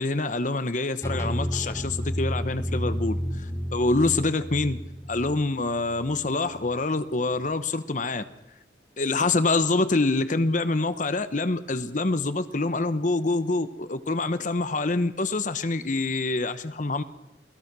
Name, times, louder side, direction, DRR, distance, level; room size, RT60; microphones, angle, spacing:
voice 1, 0.0-4.8 5.1-8.2 9.0-17.0, left 3 dB, 45° left, 12 dB, 1.0 m, -26 dB
sound 1, 1.0-6.7, equal, 15° left, 1.9 m, -31 dB
28.0 x 18.0 x 6.2 m, 0.89 s
head